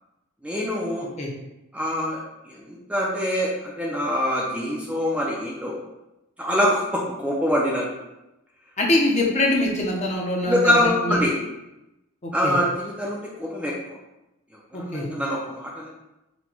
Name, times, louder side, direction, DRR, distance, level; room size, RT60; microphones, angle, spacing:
voice 1, 0.4-1.1 1.7-5.7 6.4-7.9 10.4-11.3 12.3-13.7 14.7-15.9, equal, 5° right, -4 dB, 0.4 m, -24 dB
voice 2, 8.8-10.8 11.0-11.3 12.2-12.6 14.7-15.1, left 1 dB, 30° left, -1 dB, 0.7 m, -23 dB
4.2 x 2.2 x 4.3 m, 0.95 s
head